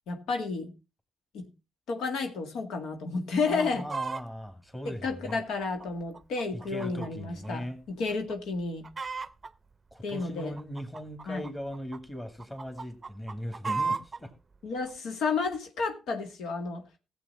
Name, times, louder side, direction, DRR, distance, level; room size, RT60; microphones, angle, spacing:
voice 1, 0.1-0.7 1.3-1.5 1.9-3.9 4.9-8.9 10.0-10.5 11.3-11.5 14.6-16.8, left 4 dB, 80° left, 5 dB, 1.8 m, -31 dB
voice 2, 3.4-5.4 6.5-7.8 9.9-14.3, equal, 10° left, 7 dB, 2.3 m, -39 dB
Chicken rooster, 3.4-4.2 4.9-7.1 7.4-7.5 8.1-8.3 8.6-9.5 10.2-12.0 12.4-14.2 14.9-15.0, right 4 dB, 30° right, 0.6 m, -35 dB
15.5 x 7.5 x 4.2 m, 0.28 s
cardioid pair, 90°, 0 cm